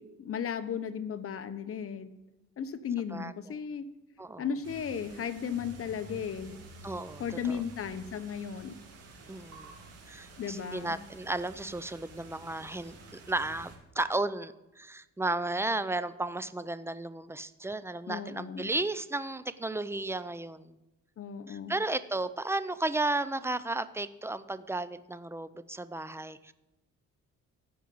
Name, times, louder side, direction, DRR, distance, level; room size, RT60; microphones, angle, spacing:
voice 1, 0.0-2.1 2.6-3.9 4.4-6.6 7.2-8.8 10.4-11.0 18.1-18.7 21.2-21.7, left 7 dB, 50° left, 10 dB, 1.0 m, -35 dB
sound 1, 4.6-13.8, right 3 dB, 55° right, 2.9 m, -50 dB
voice 2, 6.8-7.6 9.3-9.7 10.1-20.7 21.5-26.5, right 2 dB, 10° right, 14 dB, 0.6 m, -34 dB
14.5 x 5.4 x 7.8 m, 0.97 s
cardioid pair, 90°, 30 cm